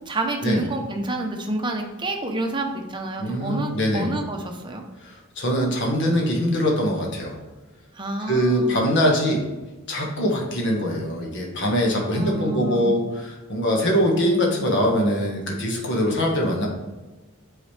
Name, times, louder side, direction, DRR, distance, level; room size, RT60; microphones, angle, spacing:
voice 1, 0.0-4.8 7.9-8.8 12.1-13.0, right 2 dB, 20° right, 2 dB, 0.8 m, -28 dB
voice 2, 3.2-4.1 5.0-7.4 8.3-9.4 9.9-16.7, equal, 55° left, -1 dB, 1.4 m, -23 dB
8.3 x 4.0 x 3.3 m, 1.2 s
head